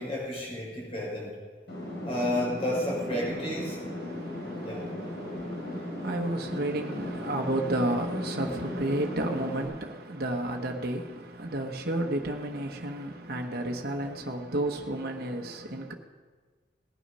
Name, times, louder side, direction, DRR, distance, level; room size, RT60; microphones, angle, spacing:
voice 1, 0.0-1.4 2.0-3.8 4.6-4.9, left 1 dB, 35° left, 5.8 m, -31 dB
sound 1, 1.7-9.6, left 1 dB, 75° left, 4.3 m, -37 dB
voice 2, 4.0-15.9, right 1 dB, 55° right, 1.3 m, -32 dB
19.0 x 9.3 x 5.6 m
head